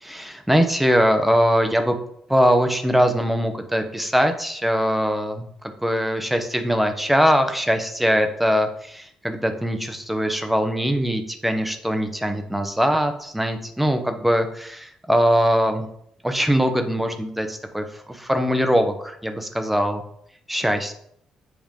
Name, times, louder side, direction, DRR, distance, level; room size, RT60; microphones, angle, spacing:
voice 1, 0.0-2.0 2.3-15.9 16.2-20.0 20.5-20.9, equal, 5° right, 7 dB, 1.0 m, -21 dB
7.5 x 2.9 x 5.3 m, 0.69 s
supercardioid pair, 65°, 2 cm